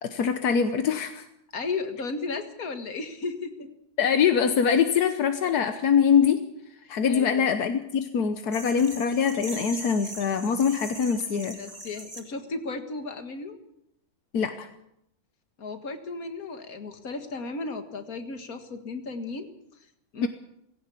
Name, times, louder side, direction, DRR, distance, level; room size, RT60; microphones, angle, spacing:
voice 1, 0.0-1.2 4.0-6.5 6.9-11.6 14.3-14.7 20.2-20.3, left 7 dB, 85° left, 8 dB, 1.6 m, -23 dB
voice 2, 1.5-3.7 6.8-7.5 11.5-13.6 15.6-19.5 20.1-20.3, left 3 dB, 65° left, 8 dB, 2.2 m, -35 dB
sound 1, 8.5-12.2, right 1 dB, 20° right, 2.8 m, -41 dB
18.5 x 16.5 x 8.4 m, 0.79 s
omnidirectional pair, 1.6 m